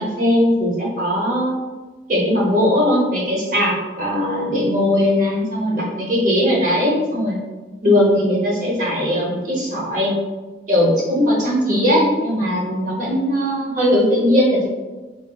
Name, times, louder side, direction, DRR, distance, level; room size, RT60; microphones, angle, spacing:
voice 1, 0.0-1.6 2.1-7.4 7.8-10.1 10.7-14.7, left 1 dB, 45° right, -4 dB, 0.7 m, -19 dB
3.8 x 2.1 x 2.3 m, 1.3 s
head